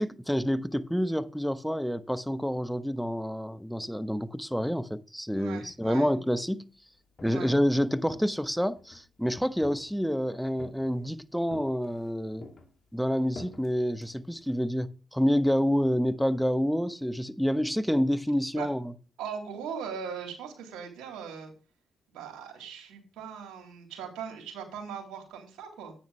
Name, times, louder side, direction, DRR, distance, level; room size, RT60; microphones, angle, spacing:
voice 1, 0.0-6.7 7.2-12.5 12.9-18.9, equal, ahead, 1.0 m, -28 dB
voice 2, 5.3-6.1 7.3-7.5 18.5-18.7 19.2-21.5 22.1-25.9, right 7 dB, 80° right, 3.6 m, -39 dB
Walk footsteps, 6.9-7.6 8.0-9.1 9.6-10.2 10.6-11.1 11.5-12.1 12.4-14.6, left 2 dB, 45° left, 2.5 m, -49 dB
9.9 x 9.1 x 3.3 m
supercardioid pair, 50°, 0 cm